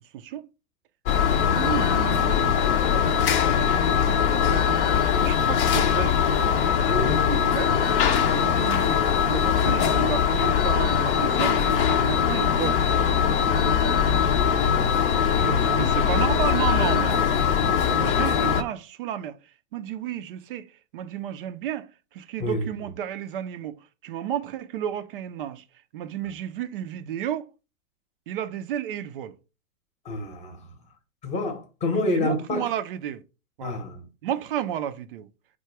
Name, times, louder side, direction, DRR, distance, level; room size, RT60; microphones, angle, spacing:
voice 1, 0.1-0.5 1.3-2.6 2.9-3.0 3.5-4.8 5.2-6.2 6.6-6.9 7.3-7.7 8.3-12.8 15.2-19.4 19.7-20.7 20.9-25.6 25.9-27.5 28.3-29.3 32.1-33.2 33.6-33.8 34.2-35.3, right 10 dB, 40° right, 0.4 m, -32 dB
sound 1, 1.1-18.6, left 7 dB, 40° left, 0.6 m, -21 dB
voice 2, 6.9-7.3 13.5-16.0 22.4-22.7 30.0-30.7 31.2-32.7 33.6-34.0, left 1 dB, 15° left, 0.9 m, -30 dB
4.8 x 2.2 x 4.4 m
hypercardioid pair, 115°, 44 cm